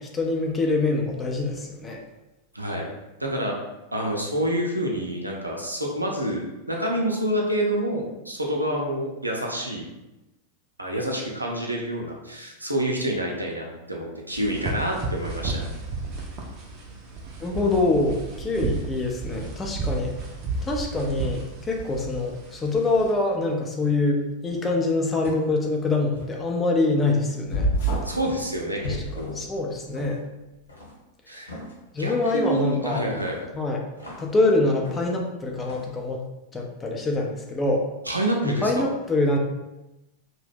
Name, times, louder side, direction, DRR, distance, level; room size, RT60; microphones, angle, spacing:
voice 1, 0.0-2.0 17.4-20.2 20.6-27.7 28.8-30.2 31.9-33.1 33.5-33.9 34.2-36.2 36.5-37.8 38.4-39.4, left 2 dB, 15° left, 0 dB, 0.5 m, -25 dB
voice 2, 2.5-2.9 3.2-3.5 3.9-9.9 10.8-15.7 28.0-29.4 31.3-31.5 32.0-33.5 38.1-38.8, right 1 dB, 85° right, -1 dB, 0.5 m, -28 dB
sound 1, 14.3-23.1, right 3 dB, 40° right, 0.5 m, -33 dB
sound 2, 24.4-24.7 25.2-25.5 26.1-26.4 28.2-28.6 29.0-29.4 29.9-30.2 30.7-31.0 31.5-31.8 32.3-32.7 33.2-34.3 34.9-35.3 35.6-35.9, left 1 dB, 80° left, 1.0 m, -43 dB
sound 3, 27.5-28.2 28.8-29.7, right 2 dB, 55° left, 0.7 m, -26 dB
2.7 x 2.1 x 3.4 m, 0.99 s
figure-of-eight pair, 90°, 0 cm